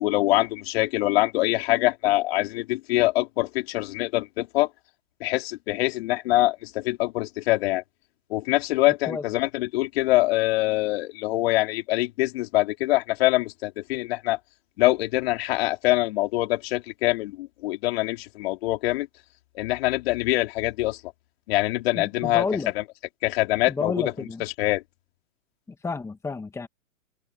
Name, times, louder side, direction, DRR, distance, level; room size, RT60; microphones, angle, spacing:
voice 1, 0.0-4.7 5.2-7.8 8.3-14.4 14.8-19.1 19.5-21.0 21.5-22.4 23.2-24.1 24.4-24.8, left 18 dB, 45° left, 4.6 m, -24 dB
voice 2, 22.0-22.7 23.7-24.4 25.7-26.7, left 4 dB, 5° left, 2.3 m, -31 dB
hypercardioid pair, 135°, 42 cm